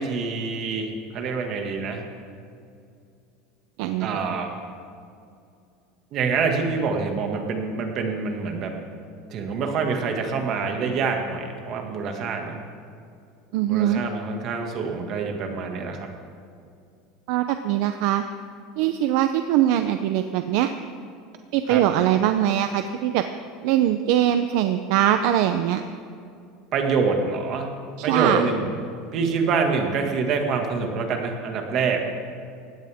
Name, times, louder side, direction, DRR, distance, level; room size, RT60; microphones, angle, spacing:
voice 1, 0.0-2.0 4.0-4.5 6.1-8.7 9.3-12.6 13.7-16.0 21.7-21.8 26.7-27.7 28.0-28.7 29.1-32.0, right 5 dB, 35° right, 3 dB, 1.9 m, -26 dB
voice 2, 13.5-14.0 17.3-18.2 18.8-20.7 21.5-23.2 23.6-25.8 28.0-28.4, right 11 dB, 55° right, 8 dB, 0.6 m, -22 dB
19.5 x 16.5 x 3.6 m, 2.4 s
cardioid pair, 180°, 0 cm